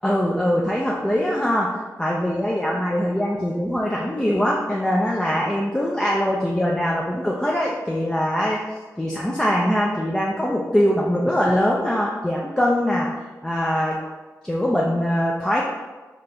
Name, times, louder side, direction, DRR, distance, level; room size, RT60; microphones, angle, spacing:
voice 1, 0.0-8.6 9.0-13.1 13.4-14.0 14.4-15.6, equal, 10° left, -3 dB, 0.5 m, -22 dB
4.3 x 2.6 x 4.3 m, 1.3 s
cardioid pair, 70°, 6 cm